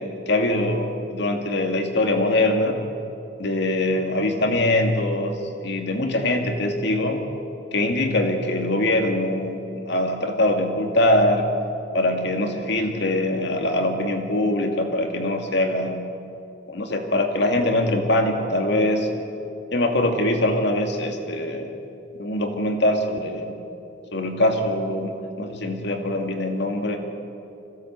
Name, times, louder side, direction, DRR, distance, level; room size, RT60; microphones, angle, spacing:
voice 1, 0.0-2.8 3.4-5.4 5.6-7.2 7.7-11.5 11.9-16.0 16.7-19.1 19.7-21.8 22.2-23.5 24.1-27.0, left 1 dB, 65° left, 4 dB, 2.4 m, -23 dB
25.5 x 16.5 x 8.2 m, 2.7 s
head